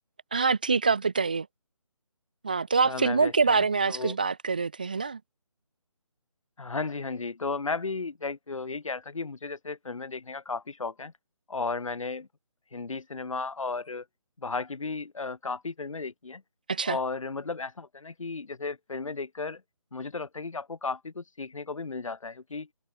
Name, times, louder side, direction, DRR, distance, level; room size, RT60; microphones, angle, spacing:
voice 1, 0.3-1.5 2.4-5.2 16.7-17.0, right 4 dB, 15° right, 0.4 m, -25 dB
voice 2, 2.8-4.2 6.6-11.1 11.5-12.3 12.7-14.0 14.4-16.4 16.8-19.6 19.9-22.7, left 4 dB, 65° left, 1.3 m, -34 dB
figure-of-eight pair, 150°, 18 cm